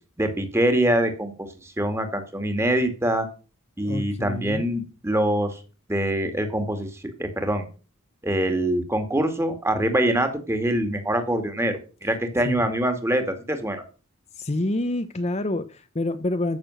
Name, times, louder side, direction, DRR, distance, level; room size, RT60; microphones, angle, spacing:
voice 1, 0.2-3.3 3.8-5.6 5.9-7.6 8.2-13.8, right 1 dB, 10° right, 7 dB, 2.2 m, -24 dB
voice 2, 3.8-4.6 12.4-12.6 14.4-16.6, left 1 dB, 30° left, 10 dB, 0.8 m, -27 dB
14.0 x 6.8 x 6.4 m, 0.35 s
head